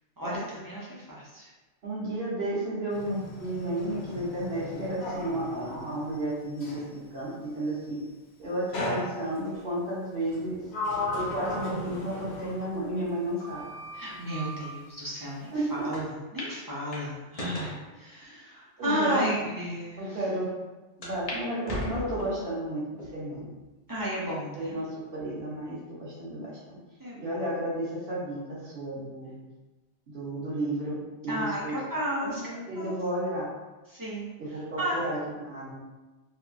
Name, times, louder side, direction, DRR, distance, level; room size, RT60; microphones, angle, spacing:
voice 1, 0.2-1.5 13.9-15.5 15.8-16.0 16.3-20.1 23.9-24.8 27.0-27.4 31.3-32.4 32.8-32.9 33.9-34.3 34.8-35.0, equal, 35° right, -7 dB, 0.3 m, -33 dB
voice 2, 1.8-8.0 8.4-10.6 11.1-13.6 15.5-15.9 18.8-19.5 20.0-20.5 21.0-23.5 24.5-26.8 27.2-29.4 30.1-31.8 32.2-33.5 34.4-35.7, right 1 dB, 60° right, -7 dB, 1.1 m, -32 dB
Sliding door, 2.9-6.9 8.7-9.6 10.3-13.2 13.4-14.7, left 1 dB, 70° left, 0.8 m, -36 dB
sound 1, 15.9-16.0 16.4-16.5 16.9-17.8 18.5-18.6 19.3-19.4 19.7-19.8 21.0-21.4 21.7-22.4 23.0-23.4 24.0-24.1 25.2-25.6, left 1 dB, 40° left, 0.6 m, -37 dB
2.9 x 2.3 x 2.5 m, 1.2 s
omnidirectional pair, 1.2 m